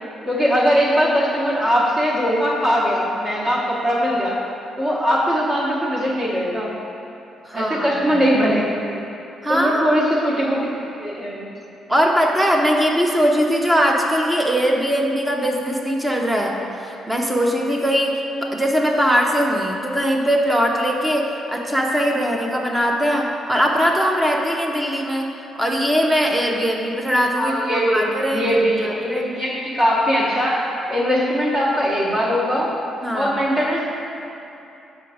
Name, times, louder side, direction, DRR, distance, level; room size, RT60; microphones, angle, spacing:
voice 1, 0.3-4.4 4.8-6.7 7.5-9.0 9.5-10.7 11.0-11.4 27.4-28.1 28.3-30.6 30.9-32.7 33.1-33.9, equal, 40° right, -6 dB, 1.1 m, -20 dB
voice 2, 7.5-8.2 9.4-9.9 10.3-10.4 11.9-16.6 16.8-25.3 25.5-29.5 33.0-33.4, equal, 10° right, 0 dB, 0.6 m, -21 dB
5.7 x 3.9 x 4.9 m, 2.7 s
cardioid pair, 90°, 0 cm